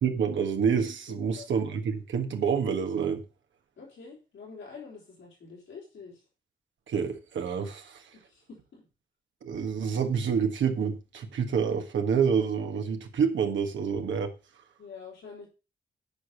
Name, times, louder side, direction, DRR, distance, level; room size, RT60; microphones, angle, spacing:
voice 1, 0.0-3.2 6.9-8.0 9.4-14.3, right 6 dB, 85° right, 1.6 m, -28 dB
voice 2, 1.1-1.5 3.8-6.2 8.2-8.8 14.8-15.5, left 5 dB, 85° left, 4.2 m, -46 dB
9.3 x 5.2 x 6.4 m
cardioid pair, 50°, 19 cm